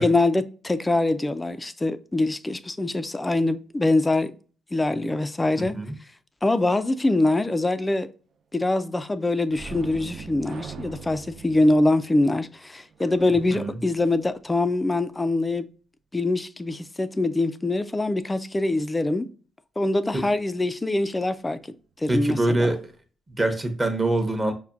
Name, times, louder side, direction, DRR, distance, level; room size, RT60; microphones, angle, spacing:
voice 1, 0.0-4.3 4.7-5.8 6.4-8.1 8.5-15.7 16.1-19.3 19.8-21.6 22.0-22.8, left 2 dB, 15° left, 0.4 m, -24 dB
voice 2, 5.6-5.9 13.5-13.8 20.1-20.2 22.1-22.8 23.3-24.5, right 2 dB, 20° right, 0.8 m, -24 dB
sound 1, 9.5-14.9 22.2-22.4 22.7-22.9, right 5 dB, 60° right, 0.4 m, -42 dB
5.7 x 2.2 x 2.5 m
cardioid pair, 90°, 0 cm